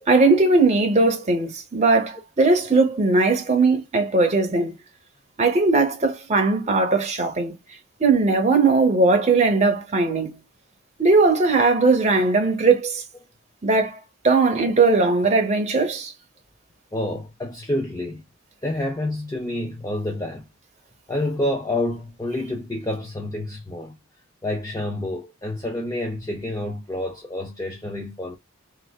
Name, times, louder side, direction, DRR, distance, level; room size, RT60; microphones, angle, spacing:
voice 1, 0.1-4.7 5.4-7.5 8.0-10.4 11.0-13.0 13.6-14.0 14.2-16.1, right 3 dB, 35° right, 0.8 m, -19 dB
voice 2, 16.9-18.2 18.6-20.4 21.1-23.9 24.4-28.4, left 1 dB, 15° left, 0.5 m, -28 dB
3.3 x 2.4 x 2.3 m
head